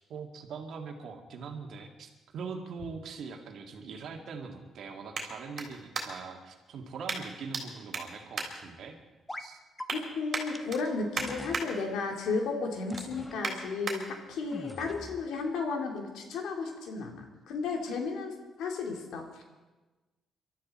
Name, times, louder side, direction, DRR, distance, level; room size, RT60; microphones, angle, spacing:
voice 1, 0.1-9.0 9.4-9.6, right 5 dB, 70° right, 3 dB, 1.9 m, -42 dB
sound 1, 2.6-6.4 7.1-7.6 7.9-9.2 9.6-10.0 10.3-11.7 12.1-12.3 12.7-14.0 14.5-14.6, right 4 dB, 45° right, 3.5 m, -38 dB
sound 2, 9.3-9.5 9.8-9.9 10.5-10.6 11.2-11.7 12.9-13.4 14.5-15.2, left 1 dB, 15° left, 1.0 m, -42 dB
voice 2, 9.9-19.4, left 4 dB, 80° left, 2 dB, 2.6 m, -34 dB
23.0 x 12.5 x 4.2 m, 1.2 s
cardioid pair, 90°, 0 cm